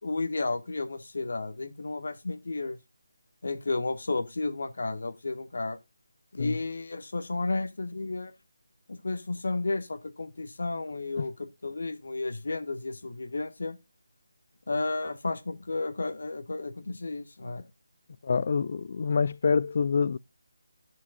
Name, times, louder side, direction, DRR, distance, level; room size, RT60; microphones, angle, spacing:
voice 1, 0.0-2.8 3.4-5.8 6.3-8.3 8.9-11.3 11.6-13.8 14.7-17.6, left 3 dB, 65° left, 1.5 m, -32 dB
voice 2, 18.2-20.2, left 5 dB, 50° left, 0.3 m, -26 dB
13.0 x 5.7 x 2.4 m
figure-of-eight pair, 160°, 0 cm